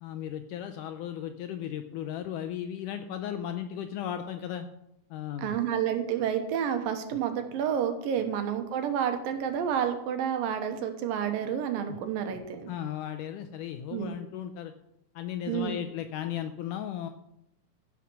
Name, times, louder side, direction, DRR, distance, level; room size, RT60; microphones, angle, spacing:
voice 1, 0.0-4.7 5.1-5.6 8.2-8.3 11.9-12.0 12.7-14.7 15.2-17.1, left 10 dB, 85° left, 8 dB, 1.9 m, -36 dB
voice 2, 5.4-12.7 13.9-14.2 15.5-15.7, right 8 dB, 75° right, 7 dB, 2.8 m, -30 dB
15.5 x 5.8 x 6.2 m, 0.82 s
omnidirectional pair, 4.2 m